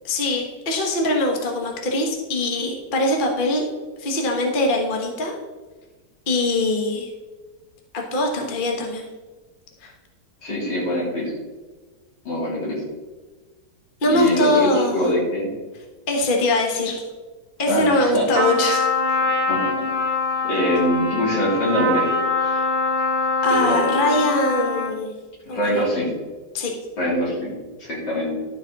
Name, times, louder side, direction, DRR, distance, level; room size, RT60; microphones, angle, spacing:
voice 1, 0.0-3.6 4.0-5.3 6.3-7.1 7.9-9.1 9.8-9.9 14.0-15.0 16.1-17.0 17.6-18.9 23.4-25.1 25.5-25.6 26.5-26.7, left 1 dB, 30° left, 1 dB, 1.2 m, -22 dB
voice 2, 10.4-11.3 12.3-12.8 14.0-15.5 17.7-18.3 19.5-19.6 20.4-22.1 22.4-22.7 23.5-24.2 25.5-26.1 27.0-27.5 27.8-28.3, equal, 75° left, -6 dB, 3.9 m, -23 dB
Trumpet, 18.3-25.0, left 3 dB, 20° right, 0.8 m, -23 dB
11.5 x 7.2 x 4.0 m, 1.3 s
omnidirectional pair, 1.9 m